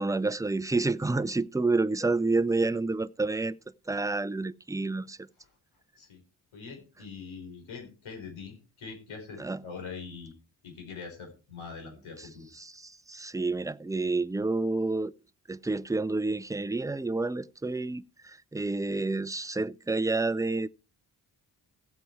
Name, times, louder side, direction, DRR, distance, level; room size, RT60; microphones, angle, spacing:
voice 1, 0.0-3.6 3.9-5.2 9.4-9.6 12.2-12.3 12.6-15.1 15.5-20.7, right 3 dB, 5° right, 0.5 m, -29 dB
voice 2, 6.5-10.3 10.6-12.5, left 5 dB, 80° left, 4.9 m, -43 dB
16.0 x 7.7 x 4.7 m
supercardioid pair, 40°, 48 cm